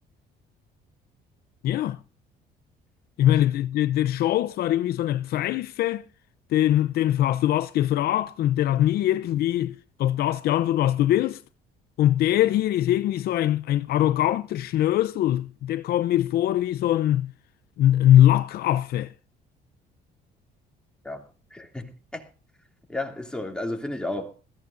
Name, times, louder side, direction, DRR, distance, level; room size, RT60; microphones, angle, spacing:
voice 1, 1.6-2.0 3.2-6.0 6.5-11.4 12.0-17.3 17.8-19.1, left 12 dB, 65° left, 0.6 m, -22 dB
voice 2, 21.0-22.3 22.9-24.3, left 2 dB, 5° left, 2.7 m, -33 dB
21.5 x 15.0 x 2.6 m
cardioid pair, 110°, 17 cm